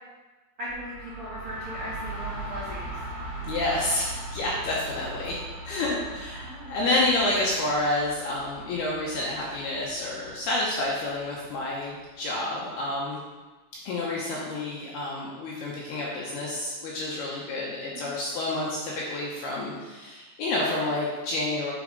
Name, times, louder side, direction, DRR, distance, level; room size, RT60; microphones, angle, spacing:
voice 1, 0.6-3.0 6.4-6.7 17.9-18.2, equal, 60° right, -9 dB, 1.4 m, -38 dB
sound 1, 0.7-12.3, right 1 dB, 90° right, 1.5 m, -40 dB
voice 2, 3.5-5.4 5.6-13.2 13.9-21.7, left 2 dB, 75° left, -4 dB, 2.5 m, -29 dB
9.5 x 4.9 x 5.2 m, 1.3 s
omnidirectional pair, 5.8 m